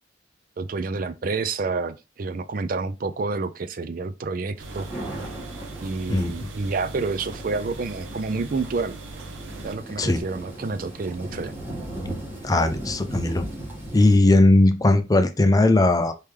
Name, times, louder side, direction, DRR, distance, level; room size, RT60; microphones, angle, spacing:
voice 1, 0.6-4.9 5.8-9.0 9.6-11.5, right 4 dB, 45° right, 0.4 m, -29 dB
sound 1, 4.6-14.2, right 1 dB, 10° right, 1.6 m, -37 dB
sound 2, 4.6-9.8, right 3 dB, 85° right, 0.7 m, -40 dB
voice 2, 6.1-6.5 10.0-10.2 12.4-13.4 13.9-16.1, left 2 dB, 20° left, 0.4 m, -18 dB
4.4 x 3.5 x 3.2 m
head